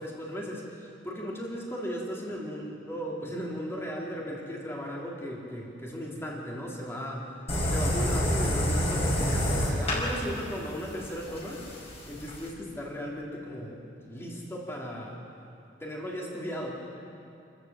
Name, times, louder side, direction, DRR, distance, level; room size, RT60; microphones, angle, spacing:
voice 1, 0.0-7.3 7.6-11.6 12.1-13.8 14.0-15.2 15.8-16.7, equal, 15° left, -3 dB, 3.6 m, -36 dB
sound 1, 7.5-12.5, equal, 35° left, 5.4 m, -28 dB
29.0 x 14.0 x 7.6 m, 2.6 s
head